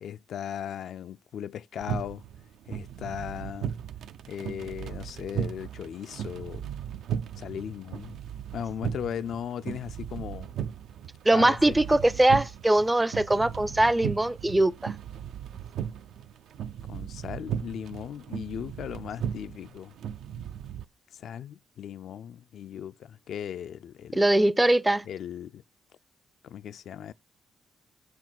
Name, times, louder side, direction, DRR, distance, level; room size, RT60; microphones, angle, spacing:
voice 1, 0.0-2.2 2.7-3.7 4.3-6.7 7.4-8.1 8.5-10.5 11.3-11.8 16.9-19.9 21.1-24.2 25.1-25.6 26.4-27.1, left 9 dB, 65° left, 0.4 m, -37 dB
sound 1, 1.8-20.8, right 9 dB, 75° right, 0.5 m, -37 dB
voice 2, 11.2-14.9 24.1-25.0, right 1 dB, 10° right, 0.4 m, -22 dB
7.4 x 4.7 x 6.0 m
cardioid pair, 130°, 0 cm